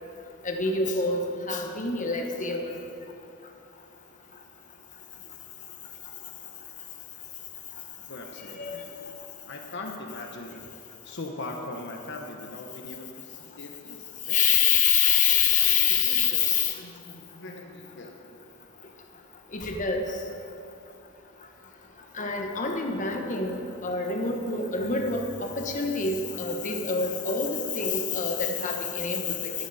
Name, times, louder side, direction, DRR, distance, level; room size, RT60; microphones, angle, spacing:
voice 1, 0.4-2.7 8.6-8.8 14.3-16.7 19.5-20.1 22.2-29.5, left 6 dB, 40° left, 2 dB, 1.2 m, -26 dB
voice 2, 8.1-8.9 9.5-14.6 15.7-18.2, left 2 dB, 60° left, 2 dB, 1.1 m, -41 dB
14.5 x 11.0 x 4.2 m, 2.7 s
head